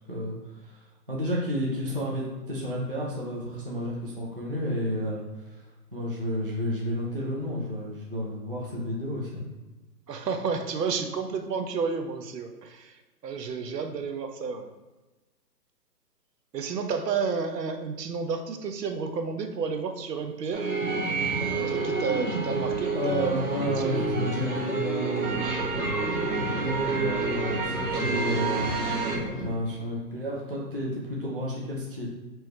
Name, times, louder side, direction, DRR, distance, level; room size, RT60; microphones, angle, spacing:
voice 1, 0.1-9.4 22.9-25.6 26.3-32.1, equal, 35° right, -4 dB, 0.4 m, -31 dB
voice 2, 10.1-14.7 16.5-20.7 21.5-24.0, right 5 dB, 75° right, 6 dB, 0.7 m, -31 dB
sound 1, 20.5-29.2, right 3 dB, 60° right, 1.2 m, -29 dB
sound 2, 25.2-29.5, left 3 dB, 70° left, 0.8 m, -39 dB
4.6 x 3.0 x 3.2 m, 1.2 s
hypercardioid pair, 175°, 50 cm